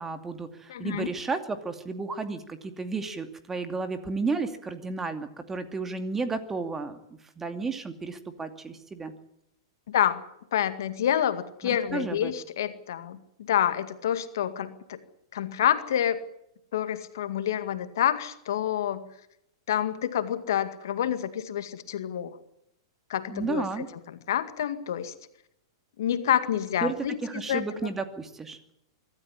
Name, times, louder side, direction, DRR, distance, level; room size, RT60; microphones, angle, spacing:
voice 1, 0.0-9.1 11.9-12.3 23.3-23.9 26.8-26.9 27.2-28.6, right 4 dB, 15° right, 8 dB, 2.5 m, -32 dB
voice 2, 0.7-1.1 9.9-10.2 10.5-15.0 15.3-16.2 16.7-19.1 19.7-22.4 23.1-25.1 26.0-27.9, left 10 dB, 65° left, 10 dB, 2.0 m, -28 dB
24.5 x 13.5 x 10.0 m, 0.78 s
hypercardioid pair, 105°, 2 cm